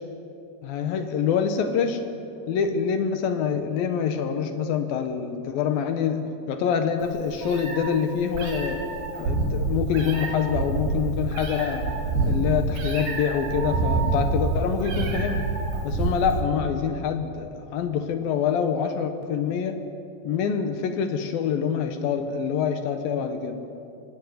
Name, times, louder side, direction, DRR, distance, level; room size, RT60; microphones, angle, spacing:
voice 1, 0.6-2.1 2.5-8.9 9.2-11.9 12.3-15.5 15.8-19.8 20.2-23.7, left 7 dB, 75° left, 7 dB, 2.1 m, -26 dB
Meow, 7.0-16.4, right 3 dB, 55° right, 5.3 m, -27 dB
24.5 x 18.5 x 9.4 m, 2.7 s
omnidirectional pair, 5.9 m